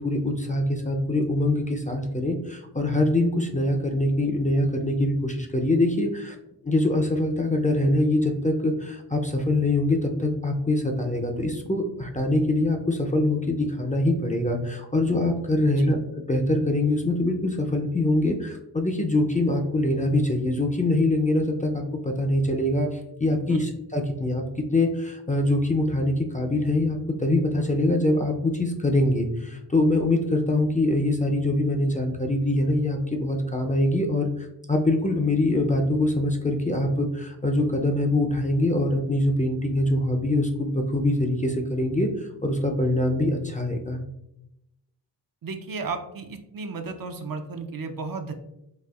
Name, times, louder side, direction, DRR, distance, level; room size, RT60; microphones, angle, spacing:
voice 1, 0.0-6.4 6.6-16.0 16.3-24.4 24.7-44.0, left 1 dB, 20° left, 2 dB, 0.4 m, -24 dB
voice 2, 45.4-48.3, right 4 dB, 55° right, 6 dB, 0.5 m, -34 dB
4.2 x 2.4 x 2.3 m, 0.84 s
cardioid pair, 45°, 43 cm